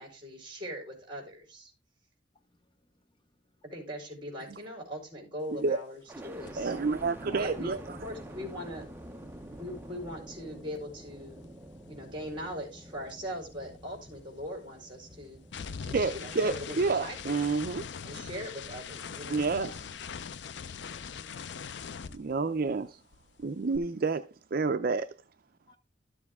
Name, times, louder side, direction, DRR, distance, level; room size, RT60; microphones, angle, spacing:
voice 1, 0.0-1.7 3.6-6.7 7.4-8.9 9.5-11.5 11.9-15.4 15.8-17.6 18.0-19.5, equal, 30° right, 4.3 m, -41 dB
sound 1, 6.1-20.1 20.6-21.3, right 1 dB, 10° right, 0.7 m, -48 dB
sound 2, 6.5-6.7 6.9-11.3 11.6-22.9 23.1-23.8, left 6 dB, 65° left, 0.5 m, -43 dB
voice 2, 6.6-8.0 15.9-17.9 19.3-19.7 22.1-23.0 23.4-25.1, right 4 dB, 50° right, 0.5 m, -29 dB
voice 3, 20.9-22.3 25.7-25.8, left 3 dB, 25° left, 0.7 m, -53 dB
13.0 x 7.2 x 3.6 m
head